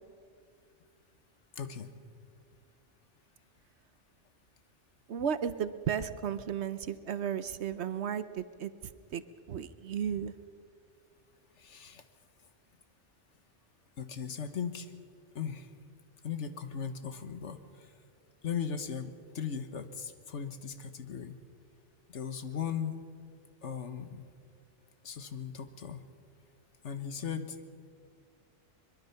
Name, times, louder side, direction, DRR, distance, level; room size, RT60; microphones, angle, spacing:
voice 1, 1.6-2.0 11.6-12.0 14.0-14.9 15.3-15.7 16.2-17.9 18.4-21.4 22.1-23.0 23.6-24.3 25.0-26.0 26.8-27.6, left 7 dB, 70° left, 9 dB, 1.5 m, -38 dB
voice 2, 5.1-8.7 9.1-9.2 9.5-10.3, right 8 dB, 65° right, 13 dB, 1.0 m, -34 dB
22.5 x 22.0 x 5.8 m, 2.2 s
omnidirectional pair, 1.3 m